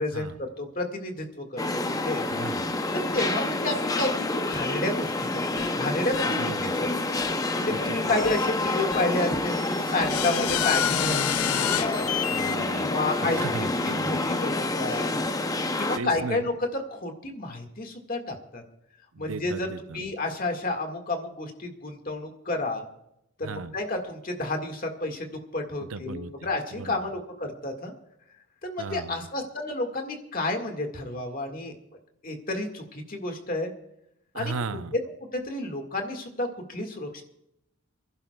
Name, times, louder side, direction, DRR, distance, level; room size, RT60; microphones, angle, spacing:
voice 1, 0.0-2.3 2.9-6.9 7.5-12.1 12.8-15.1 15.8-18.6 19.2-22.8 23.4-27.9 28.6-31.7 32.2-33.7 34.3-34.5 34.9-35.0 35.3-37.2, left 2 dB, 40° left, 4 dB, 1.8 m, -31 dB
sound 1, 1.6-16.0, left 2 dB, 15° left, 0.6 m, -28 dB
voice 2, 2.3-2.8 6.4-6.8 7.7-8.1 12.3-14.1 15.2-15.3 16.0-16.4 19.1-20.0 23.4-23.7 25.9-26.3 26.7-27.0 28.8-29.2 34.3-34.9, right 4 dB, 75° right, 12 dB, 0.6 m, -36 dB
sound 2, 5.6-5.7 6.1-6.2 7.2-7.3 8.2-8.4 8.9-9.0 10.0-12.6, left 12 dB, 85° left, 0.4 m, -28 dB
29.5 x 11.0 x 2.3 m, 0.79 s
head